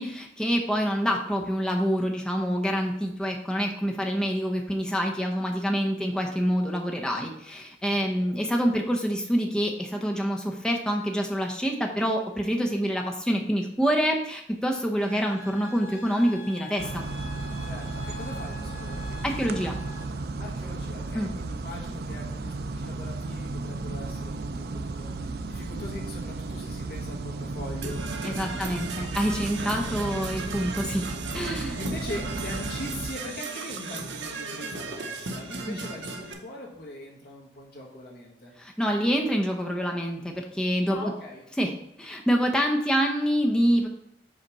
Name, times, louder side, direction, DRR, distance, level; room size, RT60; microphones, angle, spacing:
voice 1, 0.0-17.0 19.2-19.8 21.1-21.3 28.2-31.1 31.3-31.8 35.6-35.8 38.6-41.1 41.6-41.7 42.0-43.9, equal, 5° left, 1 dB, 0.6 m, -26 dB
sound 1, 15.0-20.0, left 3 dB, 15° right, 1.6 m, -44 dB
sound 2, 16.8-33.1, right 3 dB, 55° right, 0.4 m, -34 dB
voice 2, 17.6-19.2 20.4-28.9 29.6-30.3 31.7-38.5 40.9-41.4, left 1 dB, 55° left, -2 dB, 1.6 m, -41 dB
Percussion / Brass instrument, 27.8-36.3, right 3 dB, 80° right, 0.9 m, -36 dB
5.3 x 4.2 x 5.3 m, 0.73 s
head